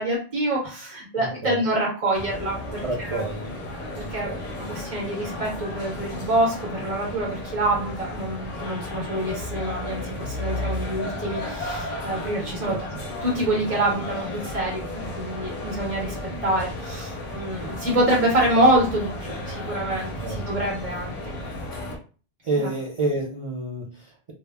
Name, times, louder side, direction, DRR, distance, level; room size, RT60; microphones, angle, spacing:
voice 1, 0.0-3.2 4.0-12.8 13.2-16.1 16.4-21.3 22.5-22.7, right 1 dB, 35° right, -4 dB, 0.9 m, -26 dB
voice 2, 1.2-1.6 2.8-3.6 4.0-4.4 12.6-12.8 20.2-20.4 22.4-24.3, right 2 dB, 55° right, -3 dB, 0.3 m, -29 dB
sound 1, 2.1-22.0, left 1 dB, 50° left, 0.7 m, -34 dB
2.1 x 2.0 x 3.3 m, 0.38 s
omnidirectional pair, 1.1 m